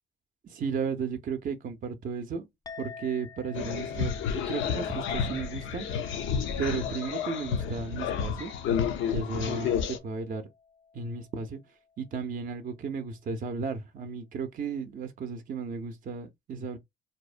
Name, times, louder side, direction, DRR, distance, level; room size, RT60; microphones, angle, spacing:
voice 1, 0.4-2.5 2.8-5.9 6.6-8.5 9.1-10.4 10.9-11.6 12.0-16.8, right 5 dB, 45° right, 0.5 m, -34 dB
Chink clink, 2.7-11.4, left 5 dB, 20° left, 0.3 m, -48 dB
sound 1, 3.5-10.0, left 7 dB, 80° left, 0.5 m, -31 dB
2.7 x 2.0 x 2.4 m
cardioid pair, 90°, 20 cm